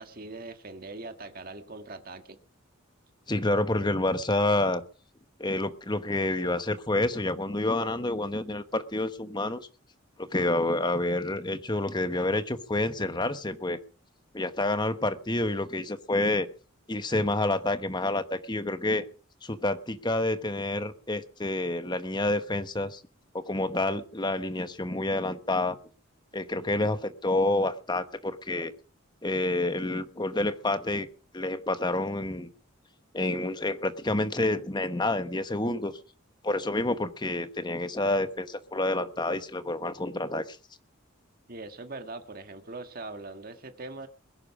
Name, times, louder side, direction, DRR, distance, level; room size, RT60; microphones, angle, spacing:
voice 1, 0.0-2.4 41.5-44.1, right 2 dB, 45° right, 7 dB, 1.7 m, -41 dB
voice 2, 3.3-4.8 5.4-9.7 10.2-13.8 14.3-16.5 16.9-19.1 19.4-23.0 23.3-25.8 26.3-28.7 29.2-31.1 31.3-32.5 33.1-35.9 36.4-40.6, left 2 dB, 20° left, 10 dB, 1.1 m, -28 dB
21.5 x 10.5 x 4.9 m, 0.39 s
head